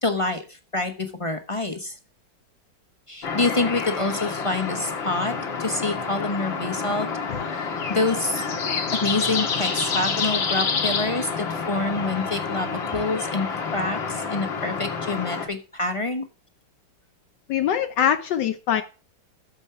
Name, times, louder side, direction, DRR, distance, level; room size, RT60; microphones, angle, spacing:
voice 1, 0.0-1.9 3.1-5.3 5.6-7.1 7.5-8.4 8.9-16.3, left 2 dB, 20° left, 6 dB, 1.0 m, -27 dB
sound 1, 3.2-15.5, left 5 dB, 85° left, 2.4 m, -28 dB
voice 2, 17.5-18.8, left 9 dB, 70° left, 9 dB, 1.2 m, -23 dB
10.5 x 7.2 x 4.7 m, 0.33 s
omnidirectional pair, 2.0 m